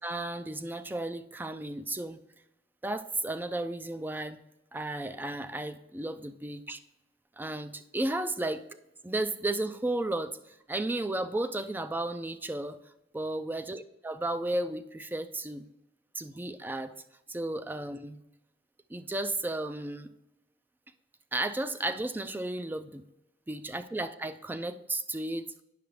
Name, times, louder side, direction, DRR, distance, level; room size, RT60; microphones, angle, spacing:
voice 1, 0.0-2.2 2.8-4.4 4.7-6.8 7.4-8.6 9.0-12.8 13.1-15.7 16.2-16.9 17.3-18.2 18.9-20.1 21.3-23.0 23.5-25.5, right 2 dB, 10° right, 10 dB, 0.3 m, -33 dB
10.0 x 5.8 x 3.1 m, 0.93 s
head